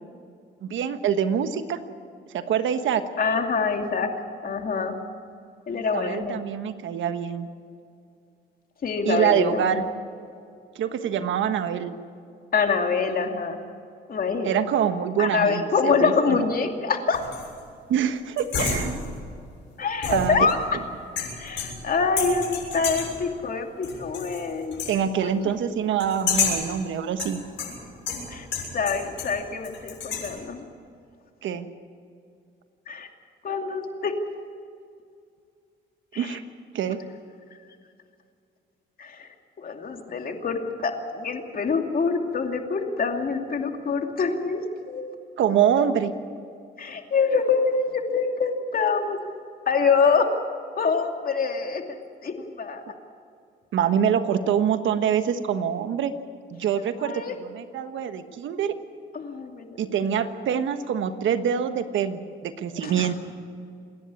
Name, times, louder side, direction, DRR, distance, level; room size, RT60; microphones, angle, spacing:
voice 1, 0.6-1.8 2.3-3.0 5.7-7.5 9.0-9.9 10.7-11.9 14.4-16.4 17.9-19.0 20.1-20.5 24.8-27.4 31.4-31.7 36.2-36.4 36.7-37.0 45.4-46.1 53.7-56.1 56.5-57.1 57.4-58.7 59.8-63.1, right 8 dB, 75° right, 9 dB, 1.4 m, -25 dB
voice 2, 3.2-4.1 4.4-5.0 5.7-6.4 8.8-9.8 12.5-13.6 14.1-14.5 15.2-17.2 19.8-20.6 21.4-24.8 25.5-25.6 28.3-28.5 28.7-30.7 32.9-33.1 33.4-34.2 36.1-36.4 39.0-39.3 39.6-45.1 46.8-49.2 49.7-50.3 50.8-51.8 52.2-52.8 57.0-57.3 59.1-59.9 62.8-63.1, left 5 dB, 45° left, 4 dB, 2.6 m, -25 dB
sound 1, 17.1-17.6 18.4-19.2 20.0-20.7 21.2-21.9 22.2-23.2 23.8-24.4 24.7-25.0 26.0-26.7 27.2-29.4 29.6-30.3, left 5 dB, 70° left, 7.0 m, -30 dB
27.0 x 11.0 x 9.6 m, 2.4 s
cardioid pair, 90°, 20 cm